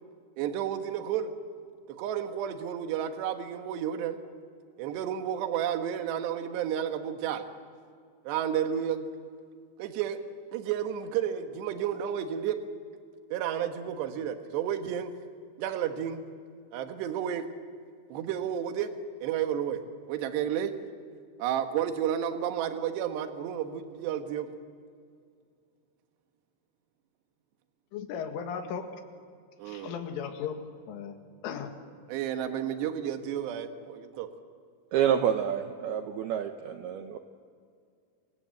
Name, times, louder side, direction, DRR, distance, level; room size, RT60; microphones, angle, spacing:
voice 1, 0.4-1.3 2.0-4.2 4.8-7.4 8.2-9.1 9.8-10.2 10.5-12.6 13.3-15.1 15.6-16.2 16.7-17.4 18.1-18.9 19.2-19.8 20.1-20.7 21.4-24.5 29.6-29.9 32.1-34.3, right 9 dB, 65° right, 6 dB, 3.3 m, -31 dB
voice 2, 27.9-28.9 29.7-30.6 30.9-31.2 31.4-31.7, left 7 dB, 75° left, 5 dB, 4.3 m, -36 dB
voice 3, 34.9-37.2, right 9 dB, 85° right, 6 dB, 2.2 m, -28 dB
28.5 x 25.5 x 7.9 m, 2.3 s
omnidirectional pair, 5.9 m